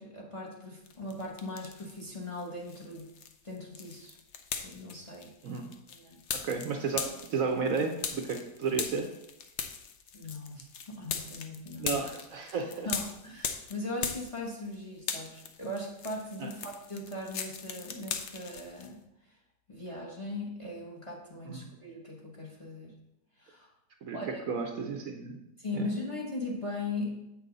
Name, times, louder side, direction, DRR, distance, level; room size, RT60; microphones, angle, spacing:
voice 1, 0.0-3.1 3.4-4.2 4.6-5.3 5.9-6.2 10.1-12.0 12.8-19.0 19.7-22.9 23.4-23.7 24.1-24.4 25.6-27.3, left 2 dB, 20° left, -2 dB, 1.1 m, -39 dB
sound 1, 0.9-2.0 2.4-14.7 15.0-18.9, left 6 dB, 60° left, 0.7 m, -39 dB
voice 2, 6.3-9.1 11.8-12.9 16.4-16.5 21.5-21.7 24.0-24.2 24.5-25.4 25.7-25.9, right 5 dB, 60° right, 3 dB, 1.0 m, -33 dB
7.7 x 6.1 x 3.9 m, 0.87 s
omnidirectional pair, 1.8 m